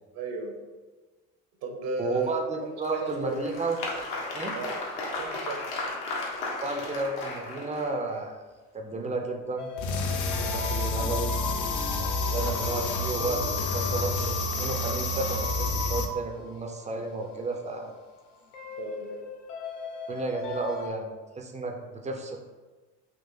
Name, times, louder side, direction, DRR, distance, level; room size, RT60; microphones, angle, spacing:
voice 1, 0.1-0.6 1.6-2.3 2.9-3.4 4.5-4.7 5.2-5.6 18.8-19.2, right 3 dB, 55° right, 2 dB, 0.7 m, -34 dB
voice 2, 2.0-3.8 4.3-4.6 6.6-8.4 8.7-9.7 10.5-11.4 12.2-17.9 20.1-22.4, right 3 dB, 15° right, 2 dB, 0.4 m, -32 dB
Applause, 2.8-8.1, left 2 dB, 65° left, 0.9 m, -35 dB
sound 1, 9.6-20.9, left 5 dB, 90° left, 0.6 m, -40 dB
sound 2, 9.8-16.1, left 2 dB, 45° left, 0.5 m, -29 dB
3.7 x 2.5 x 2.6 m, 1.3 s
hypercardioid pair, 60°, 43 cm